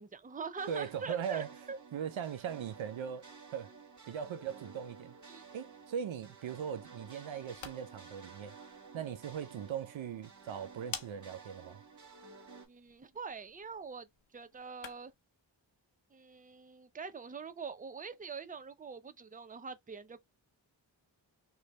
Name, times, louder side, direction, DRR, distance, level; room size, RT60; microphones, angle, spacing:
voice 1, 0.0-1.8 5.3-5.4 12.7-14.1 14.3-15.1 16.1-20.2, right 5 dB, 20° right, 0.6 m, -44 dB
sound 1, 0.6-12.7, right 5 dB, 40° right, 1.5 m, -53 dB
voice 2, 0.7-1.5 1.9-3.2 3.5-3.7 4.1-5.1 5.5-8.5 8.9-11.8, right 8 dB, 85° right, 0.6 m, -39 dB
sound 2, 7.3-15.3, left 7 dB, 85° left, 0.7 m, -52 dB
3.2 x 2.2 x 4.1 m
cardioid pair, 50°, 46 cm